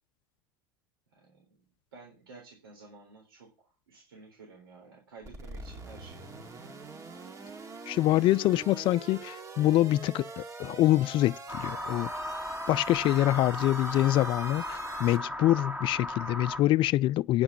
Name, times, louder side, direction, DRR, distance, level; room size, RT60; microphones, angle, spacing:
voice 1, 1.1-1.6 1.9-6.3, right 4 dB, 85° right, 3.7 m, -52 dB
sound 1, 5.2-15.2, right 3 dB, 30° right, 2.4 m, -44 dB
voice 2, 7.9-12.1 12.7-17.4, left 15 dB, 45° left, 0.4 m, -25 dB
sound 2, 11.5-16.6, left 1 dB, 10° right, 2.0 m, -36 dB
9.5 x 5.8 x 8.3 m
hypercardioid pair, 90°, 12 cm